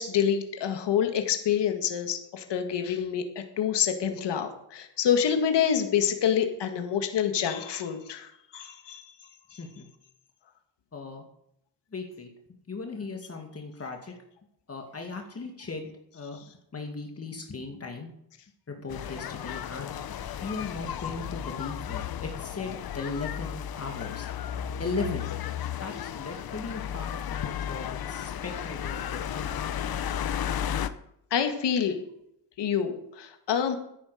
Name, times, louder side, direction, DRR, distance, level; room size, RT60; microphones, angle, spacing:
voice 1, 0.0-3.2 3.6-8.3 8.5-9.0 31.3-32.0 32.6-33.8, left 8 dB, 75° left, 6 dB, 1.9 m, -27 dB
voice 2, 10.9-11.2 11.9-12.3 12.7-14.1 14.7-15.9 16.1-16.4 16.7-18.1 18.7-20.0 20.4-24.3 24.8-25.3 25.8-29.5, left 3 dB, 35° left, 3 dB, 2.2 m, -37 dB
sound 1, 18.9-30.9, left 9 dB, 55° left, 0.9 m, -34 dB
13.5 x 10.5 x 5.0 m, 0.74 s
cardioid pair, 95°, 43 cm